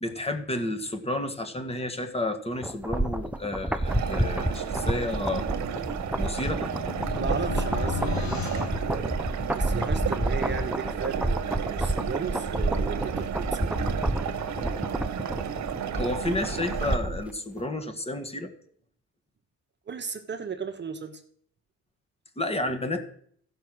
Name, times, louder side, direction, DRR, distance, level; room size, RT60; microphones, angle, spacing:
voice 1, 0.0-5.5 6.2-6.7 15.9-18.5 22.4-23.0, left 1 dB, 20° left, 7 dB, 1.7 m, -31 dB
sound 1, 2.6-17.3 17.6-17.7, right 1 dB, 5° right, 0.7 m, -30 dB
sound 2, 3.8-17.0, right 8 dB, 65° right, 1.1 m, -33 dB
sound 3, 6.0-9.7, left 8 dB, 75° left, 1.2 m, -36 dB
voice 2, 7.2-14.1 19.9-21.2, right 5 dB, 35° right, 7 dB, 1.1 m, -35 dB
14.5 x 5.8 x 6.3 m, 0.63 s
cardioid pair, 90°, 30 cm